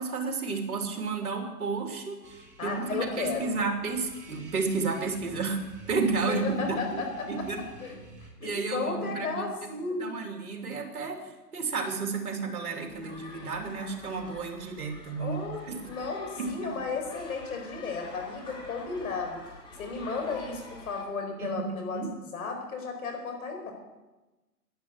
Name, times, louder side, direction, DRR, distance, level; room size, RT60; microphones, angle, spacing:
voice 1, 0.0-6.8 7.3-7.6 8.4-9.4 10.0-11.2 11.5-15.8 16.4-16.5 21.4-22.1, right 4 dB, 60° right, 4 dB, 3.1 m, -32 dB
sound 1, 2.2-8.3, right 2 dB, 20° right, 5.9 m, -50 dB
voice 2, 2.6-3.6 6.3-7.5 7.8-7.9 8.4-10.1 15.2-15.6 15.9-19.4 19.7-22.0 22.3-23.7, left 4 dB, 60° left, 3 dB, 4.8 m, -34 dB
sound 2, 12.9-21.0, left 2 dB, 10° left, 1.9 m, -47 dB
11.0 x 11.0 x 8.2 m, 1.1 s
hypercardioid pair, 140°, 49 cm